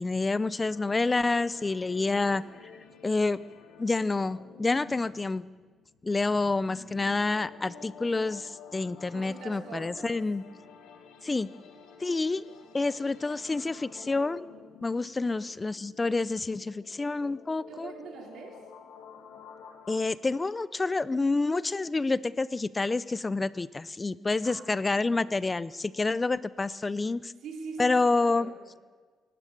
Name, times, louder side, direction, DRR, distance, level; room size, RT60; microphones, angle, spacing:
voice 1, 0.0-2.4 3.0-3.4 3.8-5.4 6.0-10.4 11.2-11.5 12.0-12.5 12.7-14.5 14.8-17.9 19.9-27.3 27.8-28.5, left 3 dB, 25° left, 0.6 m, -28 dB
sound 1, 0.6-20.0, left 6 dB, 90° left, 2.4 m, -51 dB
voice 2, 9.1-10.3 15.2-15.4 17.7-18.7 24.4-25.5 27.4-28.6, right 4 dB, 75° right, 4.0 m, -44 dB
24.5 x 14.0 x 9.4 m
cardioid pair, 90°, 0 cm